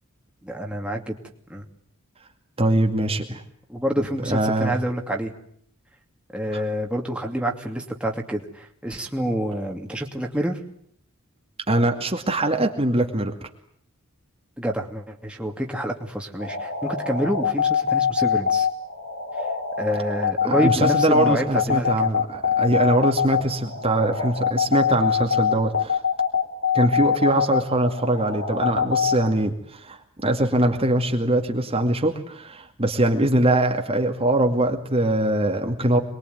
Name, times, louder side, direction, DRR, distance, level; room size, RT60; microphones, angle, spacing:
voice 1, 0.4-1.1 1.5-1.6 3.7-5.3 6.3-10.6 14.6-18.7 19.8-21.9 24.0-24.1, equal, 5° right, 1 dB, 2.6 m, -27 dB
voice 2, 2.6-3.4 4.3-4.8 6.5-6.6 11.7-13.3 20.4-26.0 26.7-36.0, right 1 dB, 25° right, 3 dB, 2.3 m, -22 dB
sound 1, 16.4-29.1, left 7 dB, 65° left, 4.8 m, -23 dB
27.5 x 22.0 x 9.5 m, 0.67 s
head